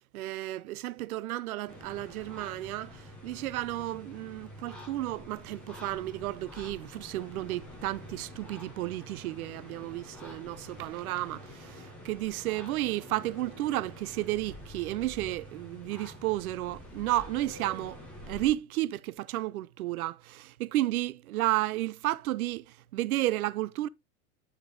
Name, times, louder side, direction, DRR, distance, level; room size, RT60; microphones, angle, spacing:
voice 1, 0.1-23.9, right 16 dB, 80° right, 0.6 m, -32 dB
sound 1, 1.7-18.5, left 1 dB, 5° left, 0.5 m, -47 dB
9.7 x 5.0 x 2.5 m
supercardioid pair, 180°, 43 cm